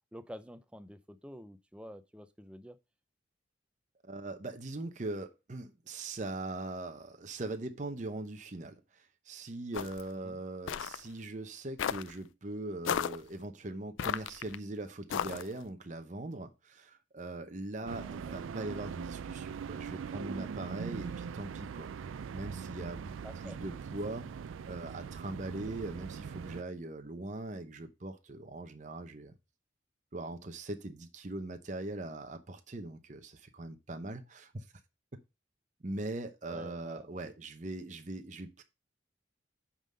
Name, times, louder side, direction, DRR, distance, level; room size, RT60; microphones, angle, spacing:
voice 1, 0.1-2.8 10.1-10.4 17.8-18.2 23.2-23.6 36.5-37.3, equal, 5° right, 0.5 m, -49 dB
voice 2, 4.0-24.3 24.6-29.3 30.1-34.6 35.8-38.6, right 2 dB, 40° right, 0.7 m, -41 dB
sound 1, 9.7-10.1 10.7-11.0 11.8-12.1 12.9-13.2 14.0-14.6 15.1-15.6, left 8 dB, 80° left, 0.4 m, -34 dB
sound 2, 17.9-26.6, right 6 dB, 90° right, 0.4 m, -41 dB
8.7 x 3.8 x 5.4 m
head